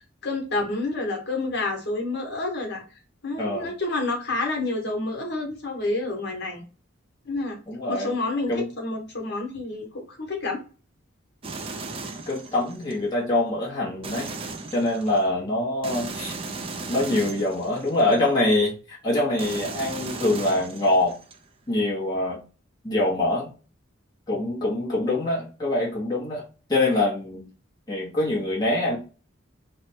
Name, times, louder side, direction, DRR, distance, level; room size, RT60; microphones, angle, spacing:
voice 1, 0.0-2.8 3.2-6.6 7.2-7.6 7.9-10.6, left 2 dB, 50° left, 0 dB, 1.1 m, -29 dB
voice 2, 3.4-3.7 7.7-8.1 8.5-8.7 12.3-14.3 14.7-16.3 16.9-21.2 21.7-22.4 22.8-23.5 24.3-26.4 26.7-27.5 27.9-29.0, left 2 dB, 20° left, -6 dB, 0.9 m, -24 dB
sound 1, 11.4-13.0 14.0-15.2 15.8-18.4 19.4-21.4, right 3 dB, 25° right, 0.4 m, -36 dB
3.2 x 2.1 x 4.2 m, 0.35 s
head